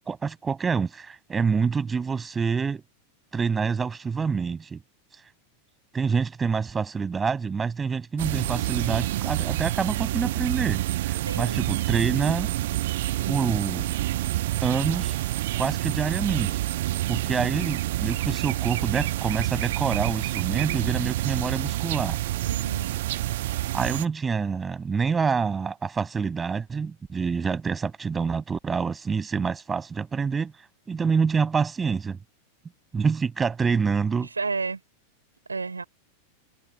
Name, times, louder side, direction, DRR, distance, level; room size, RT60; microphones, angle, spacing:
voice 1, 0.1-2.8 3.3-4.8 5.9-12.6 13.3-13.9 14.6-15.2 15.6-16.6 17.1-22.2 23.7-30.5 30.9-32.2 32.9-34.3, right 5 dB, 15° right, 6.5 m, -27 dB
sound 1, 8.2-24.1, right 15 dB, 55° right, 1.2 m, -28 dB
voice 2, 11.3-11.6 22.4-22.9 34.1-34.8 35.5-35.8, right 4 dB, 80° right, 4.5 m, -31 dB
figure-of-eight pair, 90°, 0 cm